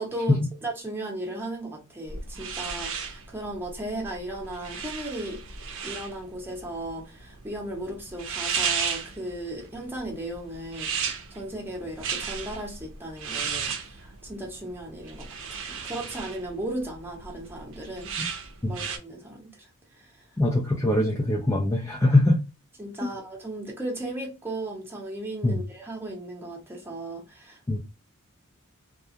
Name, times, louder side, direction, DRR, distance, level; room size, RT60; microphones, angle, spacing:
voice 1, 0.0-5.4 5.8-18.1 18.7-19.7 20.0-20.1 22.8-27.8, right 1 dB, 10° right, 0.8 m, -36 dB
sound 1, 2.1-19.0, right 6 dB, 60° right, 0.6 m, -35 dB
voice 2, 20.4-22.4 23.0-23.1 25.4-25.6 27.7-27.8, left 1 dB, 15° left, 0.4 m, -22 dB
2.3 x 2.3 x 2.7 m
head